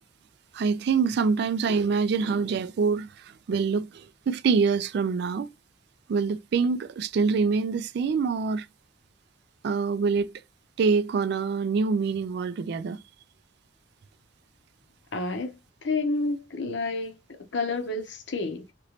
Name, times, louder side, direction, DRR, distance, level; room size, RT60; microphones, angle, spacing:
voice 1, 0.5-5.5 6.1-8.7 9.6-10.3 10.8-13.0, right 5 dB, 60° right, 0.3 m, -25 dB
voice 2, 15.1-15.5 15.8-17.2 17.5-18.6, left 3 dB, 70° left, 0.8 m, -29 dB
2.9 x 2.9 x 2.9 m
head